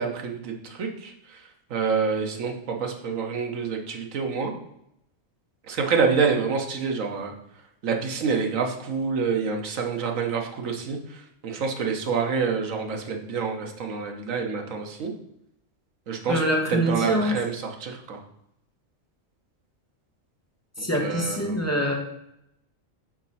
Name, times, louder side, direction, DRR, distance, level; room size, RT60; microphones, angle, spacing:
voice 1, 0.0-4.5 5.7-7.3 7.8-15.1 16.1-16.4 16.7-18.2 21.0-21.7, right 5 dB, 85° right, 3 dB, 1.3 m, -27 dB
voice 2, 16.3-17.3 20.8-21.9, equal, 15° left, -2 dB, 1.1 m, -24 dB
5.1 x 4.1 x 5.4 m, 0.80 s
omnidirectional pair, 1.3 m